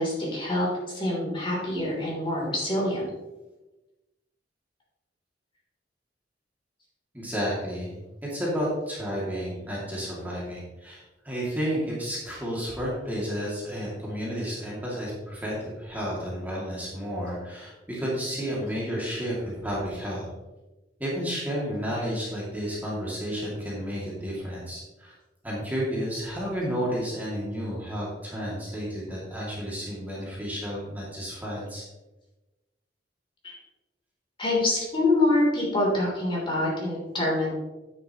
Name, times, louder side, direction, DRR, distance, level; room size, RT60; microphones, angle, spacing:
voice 1, 0.0-3.0 33.4-33.5 34.4-37.5, left 1 dB, 30° left, -4 dB, 3.1 m, -25 dB
voice 2, 7.1-20.3 21.0-25.1 25.4-31.8, equal, 10° right, -6 dB, 2.4 m, -31 dB
9.6 x 9.1 x 3.0 m, 1.1 s
head